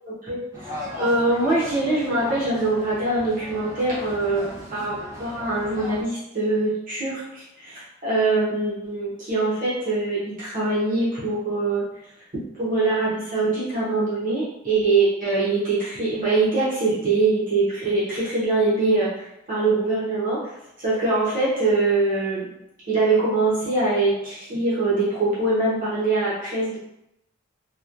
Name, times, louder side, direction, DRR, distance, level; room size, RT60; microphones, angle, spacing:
sound 1, 0.5-6.0, left 1 dB, 15° right, 0.8 m, -37 dB
voice 1, 1.0-11.8 12.6-22.5 22.9-26.8, right 3 dB, 45° right, -9 dB, 1.0 m, -23 dB
3.0 x 2.3 x 2.5 m, 0.83 s
head